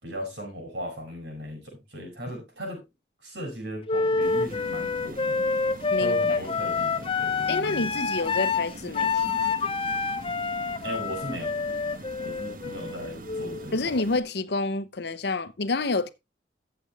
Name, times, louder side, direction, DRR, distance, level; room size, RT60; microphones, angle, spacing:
voice 1, 0.0-2.8 3.2-5.4 6.0-8.0 10.8-11.5 12.2-13.9, equal, 65° right, 7.2 m, -37 dB
Wind instrument woodwind instrument, 3.9-13.7, left 4 dB, 30° left, 0.6 m, -27 dB
sound 1, 4.2-14.2, right 2 dB, 50° right, 1.1 m, -43 dB
voice 2, 5.9-6.4 7.5-9.5 13.7-16.1, left 3 dB, 60° left, 0.8 m, -28 dB
13.5 x 7.9 x 3.4 m
head